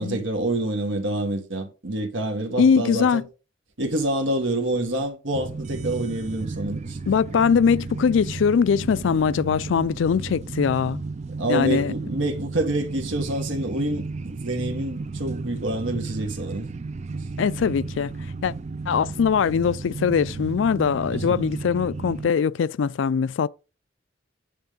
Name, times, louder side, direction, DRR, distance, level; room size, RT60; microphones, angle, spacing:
voice 1, 0.0-3.3 3.8-7.0 11.4-16.7 17.1-17.2 21.1-21.4, right 1 dB, 75° right, 1.8 m, -27 dB
voice 2, 2.6-3.2 7.1-11.0 11.5-11.9 17.4-18.1 18.4-18.5 18.9-23.5, left 6 dB, 70° left, 0.4 m, -21 dB
sound 1, 5.3-22.3, right 3 dB, 35° right, 0.4 m, -34 dB
9.3 x 3.5 x 5.2 m
head